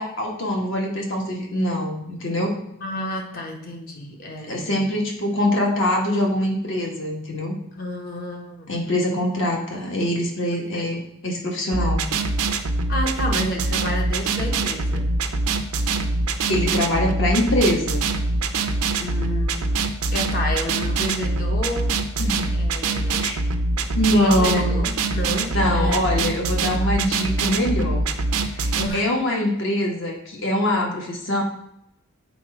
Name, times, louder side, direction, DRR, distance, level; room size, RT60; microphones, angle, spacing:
voice 1, 0.0-2.5 4.5-7.5 8.7-12.0 16.5-18.0 22.2-22.5 23.2-23.4 23.9-24.8 25.5-28.1 28.5-31.4, left 1 dB, 55° left, 0 dB, 1.4 m, -23 dB
voice 2, 2.8-4.9 7.7-8.7 10.7-10.9 11.8-12.0 12.9-15.2 19.0-19.7 20.1-22.0 22.5-23.3 24.2-26.0 28.8-29.1, left 1 dB, 40° left, 2 dB, 1.0 m, -30 dB
sound 1, 11.7-28.9, right 3 dB, 85° right, 0.6 m, -24 dB
7.0 x 4.4 x 4.8 m, 0.77 s
head